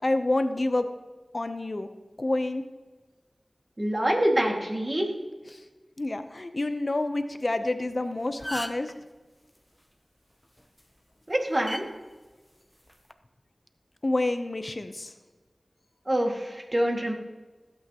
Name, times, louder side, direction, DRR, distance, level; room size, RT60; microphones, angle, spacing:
voice 1, 0.0-0.9 1.3-1.9 2.2-2.6 6.0-8.9 14.0-15.1, left 2 dB, 50° left, 9 dB, 0.7 m, -28 dB
voice 2, 3.8-5.1 11.3-11.8 16.1-17.1, right 1 dB, 40° right, 1 dB, 2.0 m, -25 dB
sound 1, 7.9-8.0 8.3-8.9 10.6-10.8 11.7-11.8 12.9-13.1, equal, 5° left, 0.7 m, -35 dB
16.0 x 8.5 x 2.9 m, 1.3 s
wide cardioid pair, 55°, 0 cm